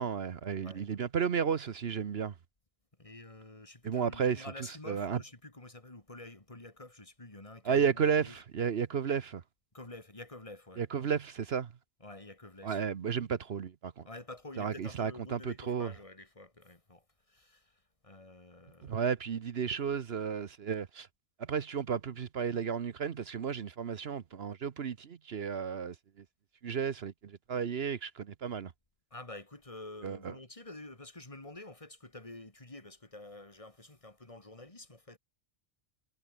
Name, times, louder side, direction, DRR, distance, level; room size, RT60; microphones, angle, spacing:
voice 1, 0.0-2.3 3.8-5.2 7.6-9.4 10.8-11.7 12.6-14.1 14.6-15.9 18.8-21.1 21.4-26.2 26.6-28.7 30.0-30.3, right 7 dB, 60° right, 1.1 m, -33 dB
voice 2, 3.0-8.4 9.7-11.2 12.0-12.8 14.0-19.1 29.1-35.2, left 2 dB, 25° left, 2.8 m, -49 dB
omnidirectional pair, 1.2 m